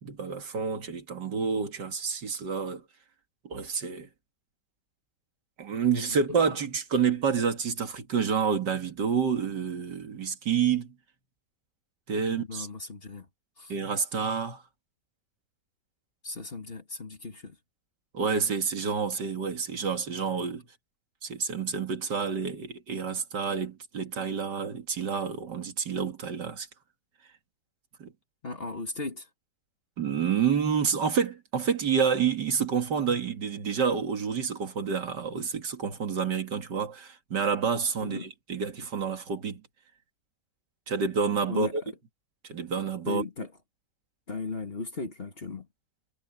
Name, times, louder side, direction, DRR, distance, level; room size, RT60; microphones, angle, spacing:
voice 1, 0.0-2.8 3.4-4.1 5.6-10.9 12.1-12.7 13.7-14.6 18.1-20.6 21.2-26.7 28.0-28.1 30.0-38.2 38.5-39.6 40.9-41.7 42.4-43.2, right 6 dB, 85° right, 2.6 m, -28 dB
voice 2, 6.1-6.6 12.2-13.3 13.6-13.8 16.2-17.6 28.4-29.3 38.0-38.3 41.5-41.9 43.0-43.5 44.3-45.7, left 3 dB, 35° left, 2.1 m, -37 dB
omnidirectional pair, 1.8 m